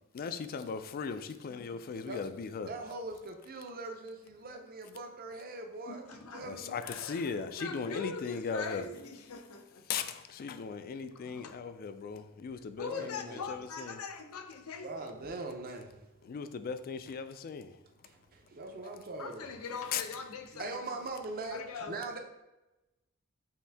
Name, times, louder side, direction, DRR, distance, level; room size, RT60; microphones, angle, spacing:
voice 1, 0.1-2.7 6.4-8.8 9.9-13.1 13.5-13.9 16.3-17.7 19.9-20.0, left 5 dB, 45° left, 0.3 m, -38 dB
voice 2, 2.7-6.0 6.3-6.7 12.8-13.5 14.8-15.9 18.5-19.5 20.5-22.2, right 3 dB, 45° right, 0.6 m, -41 dB
voice 3, 5.9-6.5 6.8-9.9 11.1-11.6 12.8-14.9 19.2-21.0 21.5-22.0, left 5 dB, 80° left, 0.6 m, -42 dB
5.6 x 2.6 x 3.4 m
head